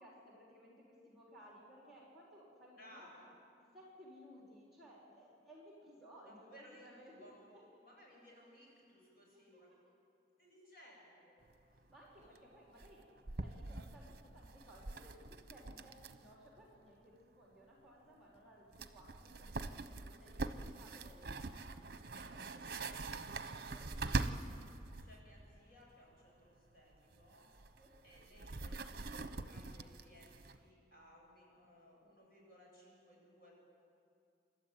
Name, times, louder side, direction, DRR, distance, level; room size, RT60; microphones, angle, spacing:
voice 1, 0.0-3.1 3.6-7.8 9.3-9.8 11.8-13.0 13.4-19.7 20.0-21.7 22.3-24.2 27.7-28.0, equal, ahead, -4 dB, 4.2 m, -60 dB
voice 2, 2.8-3.3 6.3-7.4 7.8-9.7 10.4-11.5 12.1-12.6 25.0-27.5 28.0-33.5, equal, 55° left, -3 dB, 7.6 m, -61 dB
sound 1, 11.5-11.6 11.8-11.9 12.2-12.4 12.8-16.3 16.6-16.7 18.4-18.5 18.7-25.1 26.9-30.6, right 3 dB, 55° right, 0.9 m, -43 dB
28.0 x 13.0 x 9.2 m, 2.4 s
head